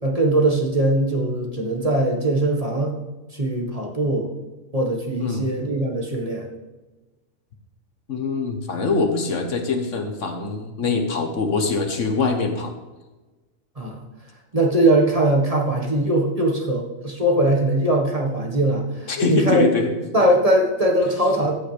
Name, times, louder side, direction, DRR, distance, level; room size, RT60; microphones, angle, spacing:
voice 1, 0.0-2.9 3.3-4.3 4.7-6.5 13.8-14.0 14.5-19.7 20.1-21.5, right 1 dB, 30° right, -1 dB, 1.6 m, -21 dB
voice 2, 5.2-5.5 8.1-12.7 19.1-19.9, left 3 dB, 65° left, 5 dB, 1.5 m, -23 dB
14.0 x 9.2 x 3.4 m, 1.2 s
omnidirectional pair, 1.4 m